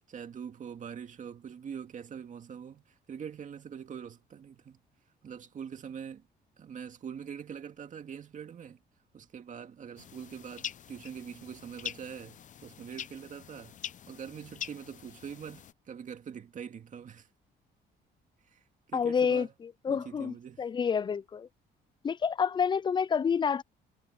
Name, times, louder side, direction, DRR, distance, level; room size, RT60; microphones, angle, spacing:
voice 1, 0.1-4.8 5.2-6.3 6.6-8.8 9.1-13.8 14.1-17.3 18.4-19.5 19.9-20.6, right 7 dB, 45° right, 2.1 m, -44 dB
sound 1, 10.0-15.7, left 9 dB, 45° left, 0.8 m, -44 dB
voice 2, 18.9-19.5 19.8-21.5 22.0-23.6, left 6 dB, 25° left, 0.4 m, -28 dB
cardioid pair, 110°, 18 cm